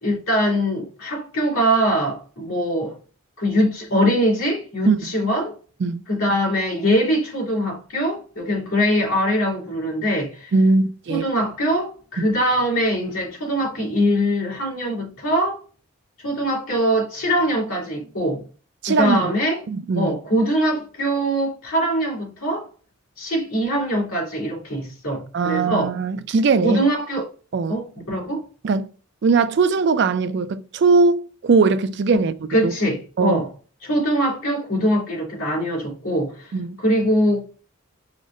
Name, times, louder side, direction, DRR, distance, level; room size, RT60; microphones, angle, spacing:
voice 1, 0.0-3.0 3.4-5.6 6.1-10.5 11.1-15.6 16.2-18.4 18.9-19.6 20.0-22.7 23.2-26.0 26.6-27.3 27.7-28.5 32.5-33.5 33.8-36.5 36.8-37.5, equal, 80° left, 2.3 m, -22 dB
voice 2, 10.5-11.2 18.8-19.3 19.7-20.2 25.3-26.8 27.5-27.8 28.6-28.9 29.2-32.3 32.6-32.7 33.2-33.4 36.5-36.8, right 4 dB, 55° right, 0.4 m, -20 dB
5.0 x 2.1 x 4.1 m
head